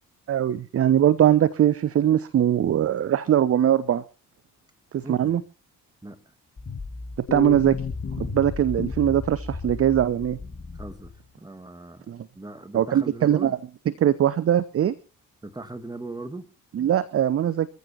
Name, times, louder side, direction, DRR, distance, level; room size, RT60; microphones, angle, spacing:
voice 1, 0.3-4.0 4.9-5.4 7.3-7.8 8.3-10.4 12.1-12.3 12.7-13.6 14.0-14.9 16.7-17.7, right 10 dB, 30° right, 0.7 m, -21 dB
voice 2, 5.0-5.4 6.0-6.2 10.7-11.1 11.4-12.1 12.4-13.5 15.4-16.5, right 2 dB, 10° right, 1.8 m, -38 dB
sound 1, 6.6-11.2, left 4 dB, 25° left, 1.4 m, -33 dB
23.5 x 14.5 x 2.9 m
figure-of-eight pair, 40°, 48 cm